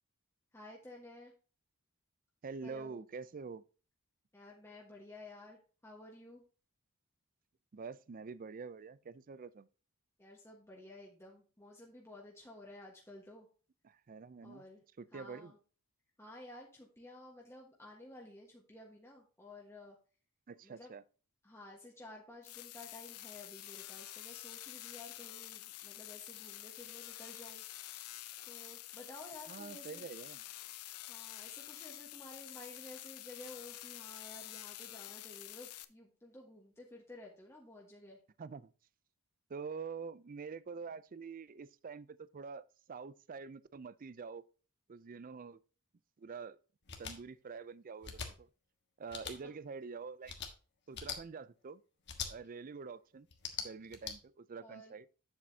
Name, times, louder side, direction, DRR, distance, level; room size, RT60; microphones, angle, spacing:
voice 1, 0.5-1.3 2.6-3.1 4.3-6.4 10.2-13.5 14.4-14.8 15.1-15.6 16.2-20.0 20.6-20.9 21.4-27.6 28.4-30.1 31.1-38.2 54.6-54.9, left 1 dB, 10° left, 1.3 m, -53 dB
voice 2, 2.4-3.6 7.7-9.7 13.8-14.6 15.0-15.5 20.5-21.0 29.5-30.4 38.4-38.7 39.5-44.4 44.9-45.6 46.2-46.6 47.0-48.5 49.0-50.4 50.9-51.8 52.3-53.3 53.6-55.1, right 5 dB, 40° right, 0.4 m, -46 dB
sound 1, 22.4-35.8, left 14 dB, 90° left, 0.7 m, -48 dB
sound 2, 46.9-47.1 48.0-48.3 49.1-49.3 50.2-50.5 50.9-51.2 52.1-52.3 53.3-54.1, left 7 dB, 50° left, 1.4 m, -41 dB
8.6 x 7.6 x 2.7 m
head